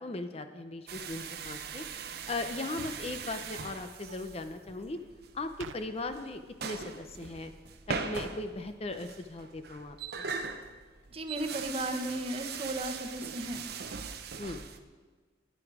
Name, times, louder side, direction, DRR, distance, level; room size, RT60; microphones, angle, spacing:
voice 1, 0.0-1.8 2.3-5.0 5.3-7.5 7.9-10.3 14.4-14.7, left 2 dB, 30° left, 8 dB, 0.6 m, -38 dB
sound 1, 0.9-14.8, right 5 dB, 55° right, 0.8 m, -41 dB
sound 2, 2.8-3.3 5.6-5.8, right 6 dB, 90° right, 0.5 m, -46 dB
voice 2, 11.1-13.6, right 1 dB, 30° right, 6 dB, 1.0 m, -35 dB
14.5 x 10.0 x 4.8 m, 1.4 s
head